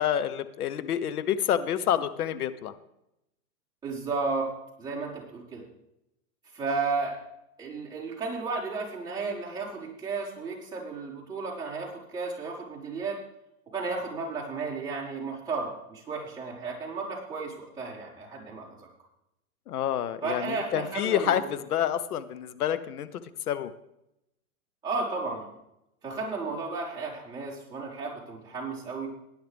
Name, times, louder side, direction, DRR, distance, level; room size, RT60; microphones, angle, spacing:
voice 1, 0.0-2.7 19.7-23.1 23.5-23.7, left 10 dB, 85° left, 14 dB, 1.0 m, -28 dB
voice 2, 3.8-4.5 4.8-5.6 6.5-7.2 7.6-13.2 13.7-18.8 20.2-21.5 24.8-25.5 26.0-29.1, right 4 dB, 10° right, -7 dB, 4.4 m, -33 dB
18.5 x 10.0 x 3.5 m, 0.86 s
hypercardioid pair, 135°, 44 cm